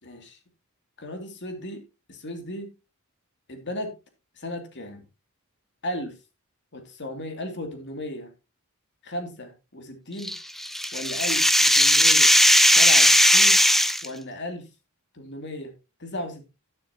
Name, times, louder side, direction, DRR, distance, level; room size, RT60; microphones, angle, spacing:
voice 1, 0.0-0.4 1.0-1.8 2.1-2.7 3.5-3.9 4.4-5.0 5.8-6.2 6.7-8.3 9.0-10.3 10.9-12.3 12.8-13.6 14.0-14.7 15.1-15.7 16.0-16.5, left 1 dB, 55° left, 2.8 m, -35 dB
sound 1, 10.2-14.1, equal, ahead, 0.7 m, -17 dB
12.0 x 11.0 x 2.9 m
head